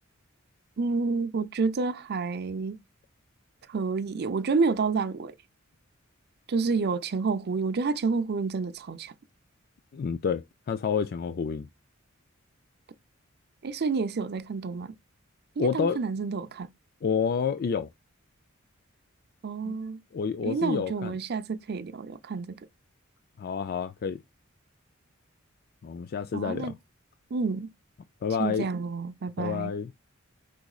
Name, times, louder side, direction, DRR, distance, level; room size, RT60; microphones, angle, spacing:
voice 1, 0.8-2.8 3.7-5.3 6.5-9.1 13.6-14.9 15.6-16.7 19.4-20.0 20.4-22.6 26.3-26.7 27.3-27.7 28.4-29.7, right 4 dB, 50° right, 0.5 m, -29 dB
voice 2, 9.9-11.7 15.6-16.0 17.0-17.9 19.6-19.8 20.1-21.2 23.4-24.2 25.8-26.7 28.2-28.7 29.4-29.9, left 6 dB, 45° left, 0.4 m, -29 dB
4.8 x 4.0 x 2.3 m
head